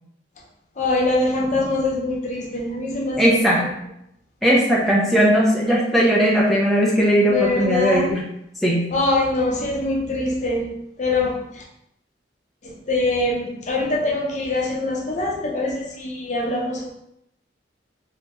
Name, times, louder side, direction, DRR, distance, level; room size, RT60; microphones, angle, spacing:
voice 1, 0.8-3.3 7.3-8.1 8.9-10.7 11.0-11.6 12.6-16.9, left 2 dB, 40° left, -2 dB, 0.7 m, -23 dB
voice 2, 3.2-3.7 4.4-8.2 8.6-8.8, equal, ahead, -5 dB, 0.5 m, -18 dB
3.3 x 2.8 x 3.0 m, 0.77 s
head